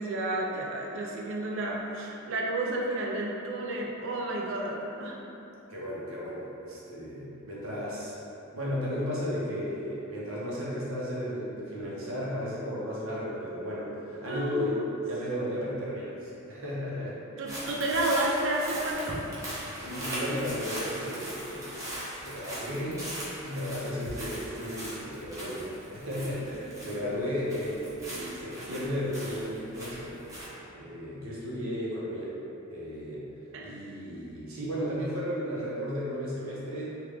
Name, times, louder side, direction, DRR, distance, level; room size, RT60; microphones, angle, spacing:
voice 1, 0.0-5.2 14.3-14.9 17.4-19.3 22.8-23.1 26.8-26.9 33.5-33.8, right 2 dB, 65° right, -2 dB, 0.4 m, -31 dB
voice 2, 5.7-8.1 8.5-14.8 15.1-17.2 17.5-17.6 19.7-21.8 22.2-23.1 23.4-30.1 30.7-32.4 32.7-33.3 33.6-36.9, equal, 80° right, -7 dB, 0.8 m, -34 dB
sound 1, 17.5-27.2 27.5-30.5, equal, 15° right, 0.7 m, -39 dB
3.3 x 2.3 x 3.4 m, 2.9 s
head